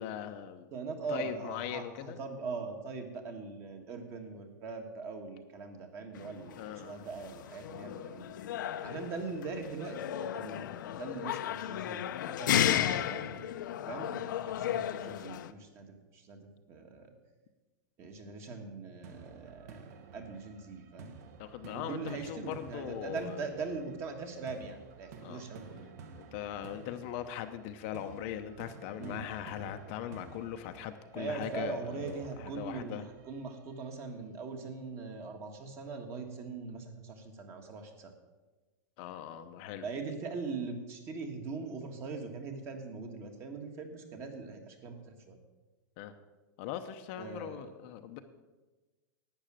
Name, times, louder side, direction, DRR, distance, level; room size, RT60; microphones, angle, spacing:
voice 1, 0.0-0.7 1.1-2.2 6.6-7.0 12.7-13.1 21.4-23.4 25.2-25.5 26.2-33.0 39.0-39.9 46.0-46.1 46.6-48.2, left 10 dB, 40° left, 7 dB, 0.7 m, -40 dB
voice 2, 0.7-8.4 8.8-13.5 13.8-17.1 18.0-21.2 21.7-25.9 29.0-29.2 31.1-38.1 39.8-45.4 47.2-47.7, right 4 dB, 25° right, 6 dB, 1.5 m, -41 dB
sound 1, 6.1-15.5, left 11 dB, 75° left, 0.7 m, -34 dB
sound 2, 19.0-34.0, right 5 dB, 55° right, 1.2 m, -52 dB
11.5 x 8.9 x 7.5 m, 1.2 s
supercardioid pair, 165°, 10 cm